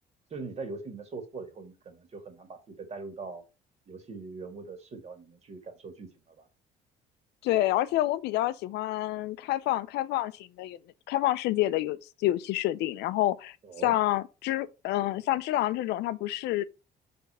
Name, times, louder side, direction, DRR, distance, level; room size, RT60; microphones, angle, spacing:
voice 1, 0.3-3.4 3.9-6.5 13.6-14.0, right 4 dB, 40° right, 2.0 m, -41 dB
voice 2, 7.4-10.8 11.1-13.6 13.8-16.6, left 15 dB, 80° left, 0.6 m, -28 dB
5.2 x 4.2 x 5.6 m
cardioid pair, 110°, 17 cm